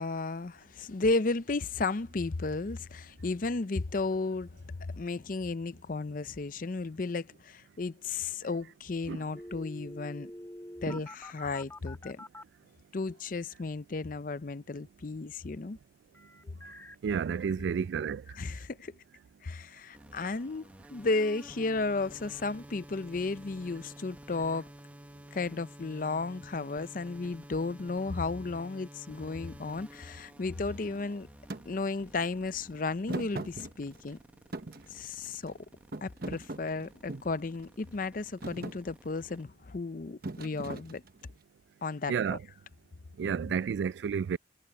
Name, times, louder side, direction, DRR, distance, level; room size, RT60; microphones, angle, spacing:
voice 1, 0.0-10.3 10.8-12.3 12.9-15.8 18.3-18.9 19.4-24.7 25.3-31.3 31.7-34.2 34.9-35.5 36.0-41.0 41.8-42.4, left 3 dB, 50° left, 0.6 m, -34 dB
sound 1, 9.3-12.4 16.1-17.0, left 1 dB, 15° left, 1.4 m, -46 dB
voice 2, 17.0-18.2 42.1-42.4 43.2-44.4, right 6 dB, 75° right, 0.3 m, -31 dB
sound 2, 19.9-39.4, equal, 10° right, 0.9 m, -52 dB
Thump thud, 31.5-31.6 33.1-34.2 34.5-35.5 35.9-37.4 37.9-38.2 38.4-38.8 40.2-41.3, right 2 dB, 55° right, 1.1 m, -39 dB
head